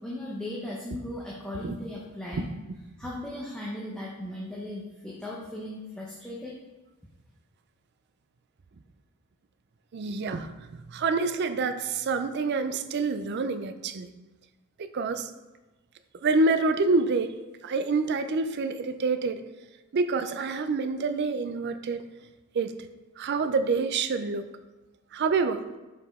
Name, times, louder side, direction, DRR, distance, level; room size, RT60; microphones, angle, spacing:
voice 1, 0.0-2.5 3.0-6.5, left 1 dB, 5° left, -5 dB, 0.7 m, -37 dB
voice 2, 9.9-10.5 10.9-14.1 14.8-15.3 16.2-17.3 17.6-19.4 19.9-22.0 22.5-22.7 23.2-24.5 25.1-25.6, right 3 dB, 50° right, 10 dB, 0.4 m, -27 dB
5.5 x 4.8 x 3.6 m, 1.1 s
head